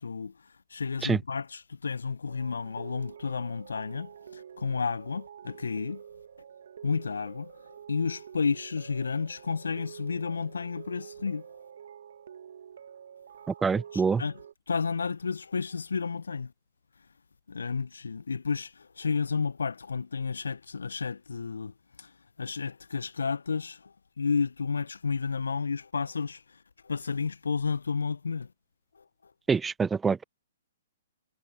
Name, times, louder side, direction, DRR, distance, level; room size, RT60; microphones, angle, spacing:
voice 1, 0.0-6.0 6.8-11.6 13.9-14.4 14.7-16.5 17.0-17.1 17.5-28.5 28.9-29.3, left 5 dB, 75° left, 0.7 m, -32 dB
sound 1, 2.3-14.5, right 8 dB, 60° right, 1.9 m, -48 dB
voice 2, 13.6-14.2 29.5-30.2, right 5 dB, 10° right, 0.6 m, -25 dB
figure-of-eight pair, 120°, 0 cm